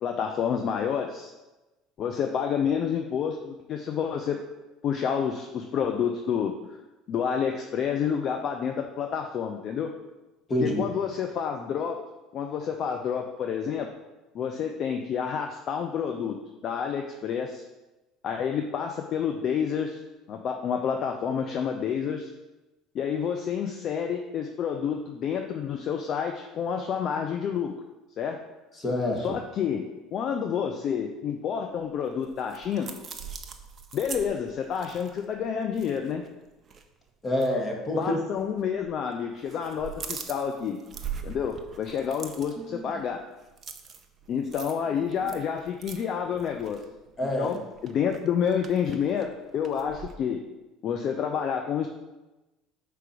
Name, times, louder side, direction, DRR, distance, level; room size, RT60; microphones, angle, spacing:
voice 1, 0.0-1.3 2.0-4.4 4.8-6.5 7.1-9.9 10.6-12.0 12.3-13.9 14.3-17.6 18.2-20.0 20.3-22.3 22.9-27.7 28.2-28.4 29.2-29.8 30.1-32.9 33.9-36.2 38.0-40.8 41.2-43.2 44.3-46.8 47.2-50.4 50.8-51.9, left 7 dB, 50° left, 4 dB, 0.6 m, -29 dB
voice 2, 10.5-10.8 28.8-29.4 37.2-38.2 47.2-47.6, left 1 dB, 30° left, 0 dB, 1.8 m, -27 dB
sound 1, 31.9-36.3 36.6-36.8 37.3-37.5 38.4-39.0 39.3-50.1, right 6 dB, 35° right, 0.8 m, -42 dB
5.2 x 4.6 x 6.0 m, 1.1 s
hypercardioid pair, 65°, 0 cm